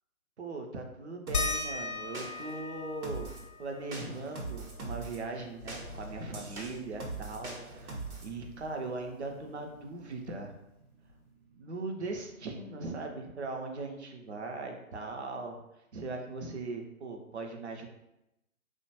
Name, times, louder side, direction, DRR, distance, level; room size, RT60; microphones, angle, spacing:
voice 1, 0.4-3.3 3.6-10.6 11.6-15.6 15.9-17.9, right 3 dB, 50° right, 3 dB, 0.4 m, -39 dB
sound 1, 1.3-6.5 6.8-6.9 7.3-9.0 10.3-10.4 11.1-11.2, left 4 dB, 90° left, 0.5 m, -39 dB
sound 2, 1.3-1.7 2.1-2.6 3.0-3.5 3.9-5.2 5.7-8.3, right 3 dB, 80° right, 0.8 m, -41 dB
sound 3, 5.6-13.1 13.8-13.9, left 1 dB, 30° left, 0.4 m, -53 dB
2.5 x 2.1 x 2.7 m, 0.89 s
figure-of-eight pair, 140°, 43 cm